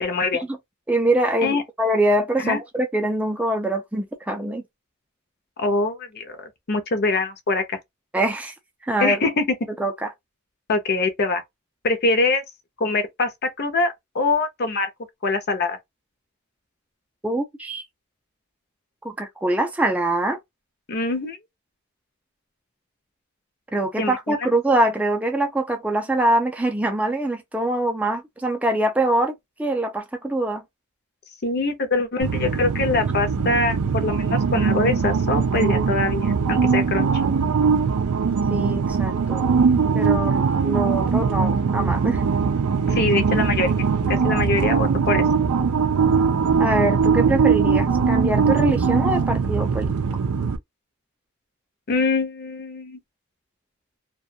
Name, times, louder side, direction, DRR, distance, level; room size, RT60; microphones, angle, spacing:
voice 1, 0.0-0.4 1.4-1.6 2.4-2.6 5.6-7.6 9.0-9.6 10.7-11.4 11.8-12.4 12.8-14.9 15.2-15.8 20.9-21.4 24.0-24.3 31.4-37.1 42.9-45.2 51.9-53.0, left 3 dB, 50° left, 0.6 m, -23 dB
voice 2, 0.9-4.6 8.1-8.5 8.8-9.2 9.8-10.1 17.2-17.8 19.0-20.4 23.7-30.6 38.5-39.4 39.9-42.2 46.6-49.9, right 1 dB, 5° right, 0.4 m, -23 dB
sound 1, 32.2-50.6, right 5 dB, 85° right, 0.4 m, -21 dB
2.3 x 2.2 x 2.6 m
head